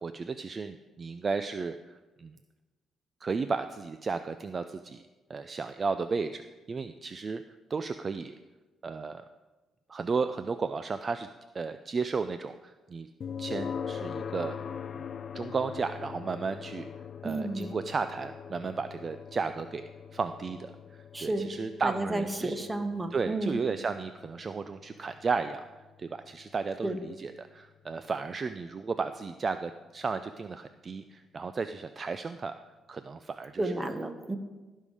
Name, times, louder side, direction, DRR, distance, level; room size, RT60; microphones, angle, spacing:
voice 1, 0.0-1.8 2.2-2.3 3.2-5.0 5.3-7.4 7.7-8.3 8.8-9.2 9.9-11.3 11.5-13.1 13.4-14.6 15.3-16.9 17.2-22.6 23.1-32.6 32.9-33.9, right 4 dB, 35° right, 10 dB, 0.4 m, -34 dB
sound 1, 13.2-28.1, left 7 dB, 50° left, 0.4 m, -42 dB
voice 2, 17.2-17.7 21.1-21.5 21.8-23.6 26.8-27.0 33.6-34.4, right 2 dB, 15° right, 8 dB, 1.1 m, -32 dB
16.0 x 5.5 x 4.9 m, 1.2 s
cardioid pair, 90°, 0 cm